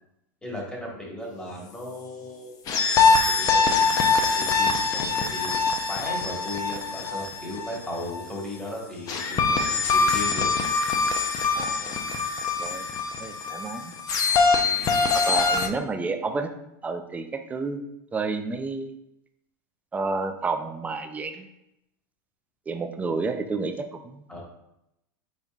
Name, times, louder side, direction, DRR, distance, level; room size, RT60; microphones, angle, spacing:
voice 1, 0.4-2.5 2.8-10.5 14.8-15.0 24.3-24.4, left 1 dB, 10° left, -3 dB, 1.4 m, -37 dB
sound 1, 2.7-8.2 9.1-15.7, left 4 dB, 35° left, 0.6 m, -23 dB
voice 2, 11.6-12.0 12.6-12.9 13.2-13.9 15.1-16.5 16.8-17.8 18.1-18.9 19.9-21.4 22.7-24.2, right 4 dB, 15° right, 6 dB, 0.4 m, -30 dB
5.3 x 4.1 x 2.4 m, 0.83 s
supercardioid pair, 130°, 10 cm